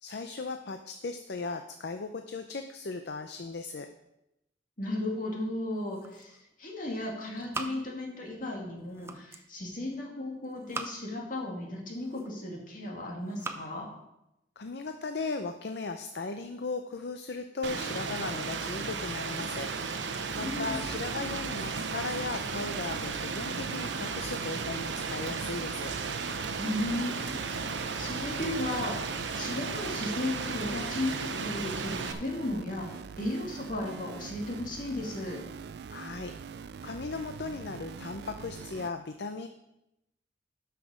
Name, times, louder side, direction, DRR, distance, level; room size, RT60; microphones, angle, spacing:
voice 1, 0.0-3.9 14.6-19.7 20.3-25.9 35.9-36.3 36.8-39.5, left 3 dB, 65° left, 7 dB, 0.6 m, -37 dB
voice 2, 4.8-13.9 20.4-21.1 26.6-27.5 28.0-35.4, left 1 dB, 50° left, -1 dB, 2.3 m, -35 dB
sound 1, 5.6-6.6 6.9-8.3 8.7-9.5 10.4-11.3 11.8-12.6 13.1-13.7, right 3 dB, 15° right, 0.7 m, -42 dB
Rain, 17.6-32.1, right 5 dB, 85° right, 0.8 m, -35 dB
sound 2, 20.3-38.9, right 6 dB, 65° right, 0.3 m, -44 dB
12.0 x 5.9 x 5.0 m, 0.87 s
head